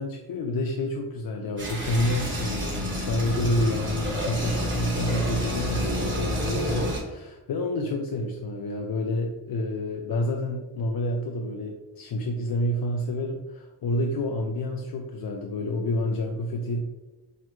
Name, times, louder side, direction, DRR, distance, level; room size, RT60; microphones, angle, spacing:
voice 1, 0.0-16.8, left 1 dB, 50° left, 2 dB, 0.5 m, -29 dB
sound 1, 1.6-7.0, equal, 25° right, 1.1 m, -29 dB
5.7 x 2.1 x 3.0 m, 1.1 s
wide cardioid pair, 90°, 47 cm